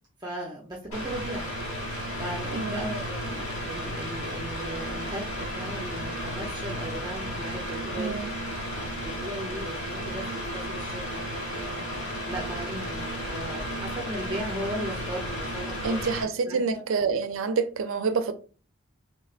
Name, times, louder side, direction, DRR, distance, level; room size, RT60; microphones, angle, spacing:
voice 1, 0.2-1.5 2.2-8.1 8.8-11.9 12.3-16.0 16.4-16.8, right 1 dB, 20° right, 0.5 m, -37 dB
Mechanical fan, 0.9-16.2, equal, 80° left, 1.1 m, -33 dB
voice 2, 2.5-2.8 7.9-8.3 15.8-18.3, right 5 dB, 70° right, 0.4 m, -27 dB
3.2 x 3.2 x 2.4 m
head